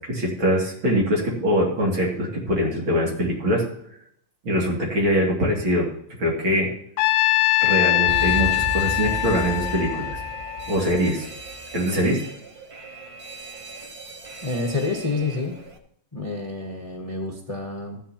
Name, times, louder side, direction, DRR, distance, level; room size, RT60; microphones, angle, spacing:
voice 1, 0.1-3.6 4.4-5.9 6.2-6.7 7.6-10.2 10.7-11.3 11.7-12.2, equal, 75° right, -2 dB, 3.3 m, -23 dB
Trumpet, 7.0-11.2, left 18 dB, 80° left, 1.3 m, -22 dB
Alarm, 8.1-15.8, right 2 dB, 40° right, 0.5 m, -35 dB
voice 2, 14.4-15.5 16.1-18.0, left 3 dB, 25° left, 2 dB, 0.8 m, -28 dB
14.0 x 9.9 x 2.9 m, 0.72 s
omnidirectional pair, 2.2 m